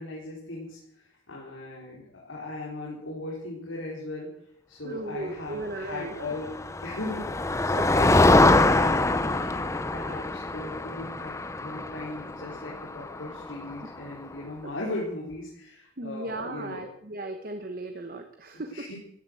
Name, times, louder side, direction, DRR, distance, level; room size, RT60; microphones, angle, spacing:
voice 1, 0.0-4.3 4.7-6.5 6.8-16.9 18.0-18.1 18.7-19.0, left 2 dB, 85° left, -4 dB, 4.6 m, -38 dB
voice 2, 4.8-6.2 7.8-7.9 13.7-13.9 14.6-14.7 16.0-18.9, right 2 dB, 45° right, 6 dB, 1.3 m, -36 dB
Motor vehicle (road), 6.2-14.0, left 2 dB, 15° left, 0.7 m, -24 dB
15.5 x 11.5 x 7.8 m, 0.74 s
head